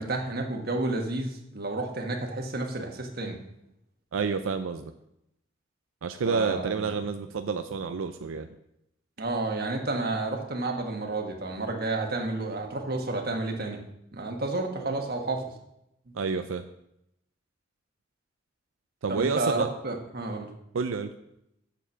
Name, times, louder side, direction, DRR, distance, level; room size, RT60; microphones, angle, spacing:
voice 1, 0.0-3.4 6.2-6.9 9.2-13.8 14.1-15.4 19.1-20.5, right 2 dB, 50° right, 2 dB, 1.4 m, -31 dB
voice 2, 4.1-4.8 6.0-8.5 14.8-14.9 16.1-16.6 19.0-19.7 20.7-21.1, right 5 dB, 90° right, 8 dB, 0.5 m, -29 dB
7.1 x 6.9 x 5.9 m, 0.82 s
head